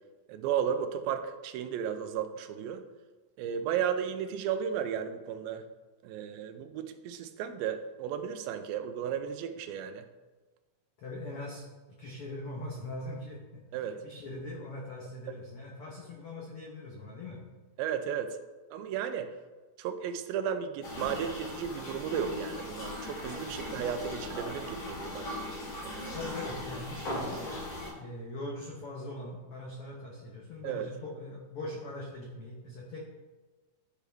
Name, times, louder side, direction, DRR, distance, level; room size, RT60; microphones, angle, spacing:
voice 1, 0.3-2.8 3.4-5.7 6.0-10.1 13.7-14.0 17.8-18.4 18.7-19.3 19.8-25.4 25.8-26.2 30.6-30.9, right 8 dB, 85° right, 8 dB, 2.4 m, -34 dB
voice 2, 11.0-17.4 26.1-27.6 27.9-33.0, left 1 dB, 80° left, -3 dB, 1.2 m, -41 dB
sound 1, 20.8-27.9, left 1 dB, 55° left, 1.3 m, -39 dB
11.5 x 4.6 x 3.4 m, 1.2 s
omnidirectional pair, 4.2 m